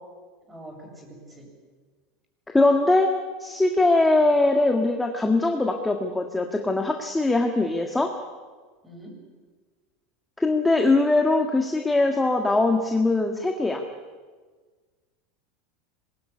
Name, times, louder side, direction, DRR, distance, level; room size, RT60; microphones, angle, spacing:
voice 1, 0.5-1.5 8.8-9.2, right 1 dB, 10° right, 2 dB, 7.2 m, -44 dB
voice 2, 2.5-3.1 3.4-8.1 10.4-13.8, left 2 dB, 5° left, 3 dB, 1.7 m, -21 dB
25.5 x 21.5 x 9.9 m, 1.5 s
supercardioid pair, 150°, 0 cm